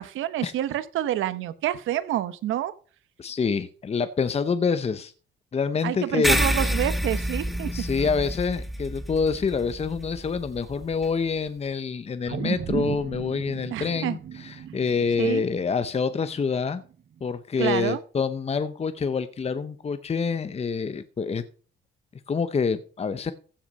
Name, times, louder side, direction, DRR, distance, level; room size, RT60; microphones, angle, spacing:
voice 1, 0.0-2.7 5.8-7.7 13.7-14.2 15.2-15.4 17.6-18.0, right 12 dB, 85° right, 14 dB, 1.0 m, -28 dB
voice 2, 3.2-5.1 5.5-6.4 7.6-16.8 17.2-21.4 22.3-23.3, left 5 dB, 30° left, 11 dB, 0.8 m, -27 dB
sound 1, 6.2-11.1, equal, ahead, 1.4 m, -28 dB
sound 2, 12.3-16.8 17.2-17.3, right 9 dB, 45° right, 0.6 m, -35 dB
15.0 x 5.8 x 5.4 m, 0.40 s
cardioid pair, 90°, 20 cm